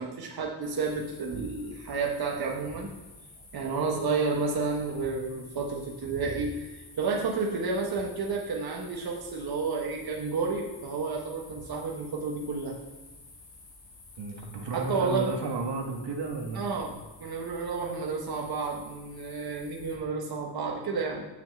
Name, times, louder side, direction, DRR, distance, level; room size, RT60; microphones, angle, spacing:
voice 1, 0.0-2.9 3.5-12.8 14.7-15.3 16.6-16.9 17.2-21.3, right 4 dB, 60° right, 0 dB, 1.2 m, -31 dB
sound 1, 0.6-20.0, left 2 dB, 90° left, 2.9 m, -51 dB
voice 2, 14.2-17.0, right 3 dB, 85° right, 2 dB, 1.6 m, -33 dB
7.4 x 6.3 x 7.6 m, 1.1 s
wide cardioid pair, 175°, 41 cm